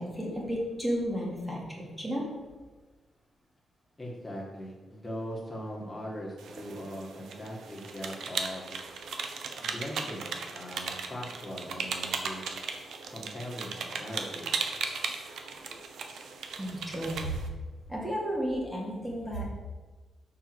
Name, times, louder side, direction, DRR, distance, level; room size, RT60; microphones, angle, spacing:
voice 1, 0.0-2.4 16.6-17.3 17.9-19.4, equal, 10° right, -3 dB, 2.0 m, -33 dB
voice 2, 4.0-8.7 9.6-12.4 13.1-14.5, equal, 10° left, -4 dB, 1.9 m, -40 dB
sound 1, 6.4-17.5, right 5 dB, 80° right, 0.8 m, -37 dB
6.4 x 4.8 x 6.2 m, 1.3 s
wide cardioid pair, 140°, 0 cm